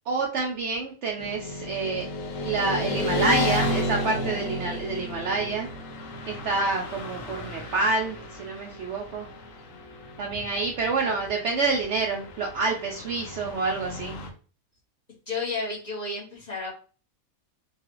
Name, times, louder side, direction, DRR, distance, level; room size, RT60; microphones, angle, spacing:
voice 1, 0.1-2.1 2.4-5.7 6.3-9.3 10.2-14.2, right 3 dB, 65° right, 0 dB, 0.7 m, -28 dB
Motorcycle / Traffic noise roadway noise, 1.2-14.3, left 1 dB, 70° left, 1.0 m, -33 dB
voice 2, 15.3-16.7, left 3 dB, 30° left, -5 dB, 1.0 m, -32 dB
3.1 x 2.3 x 2.9 m, 0.37 s
omnidirectional pair, 1.5 m